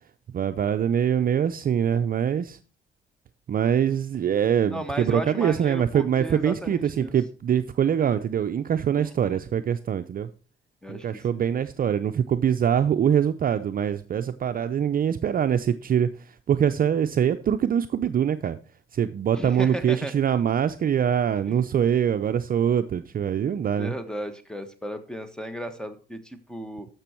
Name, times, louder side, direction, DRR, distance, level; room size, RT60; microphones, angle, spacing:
voice 1, 0.3-2.6 3.5-10.3 10.9-18.6 18.9-23.9, right 8 dB, 45° right, 10 dB, 0.5 m, -24 dB
voice 2, 4.7-7.1 8.9-9.4 10.8-11.6 19.3-20.1 21.5-21.6 23.8-26.9, right 1 dB, 5° left, 10 dB, 1.3 m, -35 dB
13.0 x 6.1 x 4.5 m, 0.37 s
cardioid pair, 90°, 20 cm